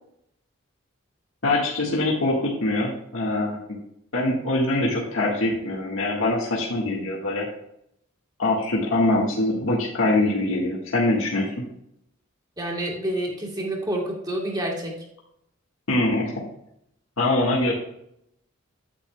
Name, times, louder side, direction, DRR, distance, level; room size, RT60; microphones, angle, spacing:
voice 1, 1.4-3.8 4.1-7.5 8.4-11.5 15.9-16.4 17.2-17.7, left 2 dB, 80° left, -3 dB, 1.7 m, -23 dB
voice 2, 12.6-15.0, right 1 dB, 20° right, -1 dB, 2.0 m, -28 dB
9.5 x 8.7 x 2.3 m, 0.75 s
head